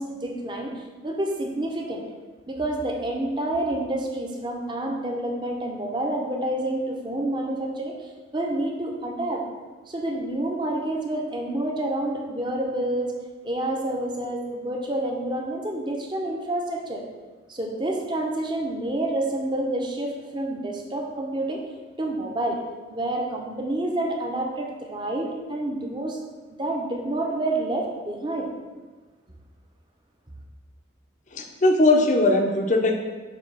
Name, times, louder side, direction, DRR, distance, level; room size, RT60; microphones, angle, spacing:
voice 1, 0.0-2.0 2.5-8.0 8.3-9.4 9.9-13.1 13.4-17.0 17.5-21.6 22.0-22.6 22.9-26.2 26.6-28.5, right 1 dB, 25° right, 1 dB, 0.7 m, -28 dB
voice 2, 31.3-33.0, left 2 dB, 40° left, 3 dB, 0.7 m, -19 dB
7.4 x 2.9 x 5.4 m, 1.4 s
head